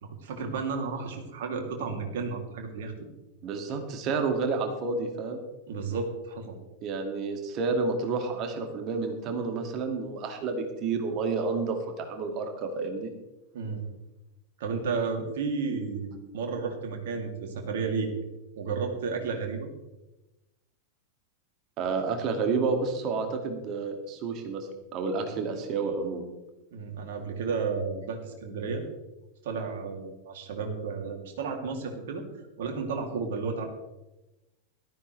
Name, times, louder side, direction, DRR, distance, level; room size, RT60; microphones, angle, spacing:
voice 1, 0.0-3.1 5.7-6.6 13.5-13.8 14.6-18.1 18.6-19.7 26.7-28.8 29.4-32.2 32.6-33.7, right 5 dB, 55° right, 3 dB, 3.0 m, -32 dB
voice 2, 3.4-5.4 6.8-13.1 21.8-26.2, right 4 dB, 35° right, 4 dB, 2.4 m, -30 dB
17.5 x 14.0 x 3.4 m, 1.0 s
figure-of-eight pair, 90°, 0 cm